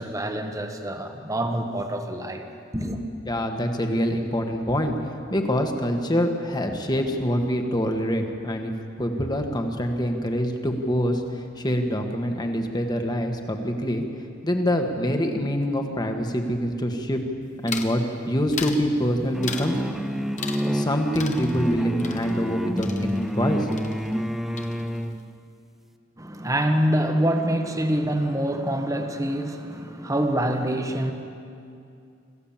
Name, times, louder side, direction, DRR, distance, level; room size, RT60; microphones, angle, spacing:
voice 1, 0.0-2.4 2.7-3.0 26.2-31.1, right 1 dB, 15° right, 5 dB, 1.4 m, -25 dB
voice 2, 3.3-4.9 5.3-8.7 9.0-14.0 14.4-17.2 17.6-19.8 20.6-23.7, equal, 20° left, 4 dB, 1.7 m, -25 dB
sound 1, 17.7-18.0 18.5-18.9 19.4-19.8 20.4-20.9 21.2-23.5 23.7-24.3 24.6-25.1, left 5 dB, 40° left, 1.4 m, -36 dB
sound 2, 19.3-25.2, equal, ahead, 0.6 m, -28 dB
26.5 x 15.0 x 7.5 m, 2.5 s
head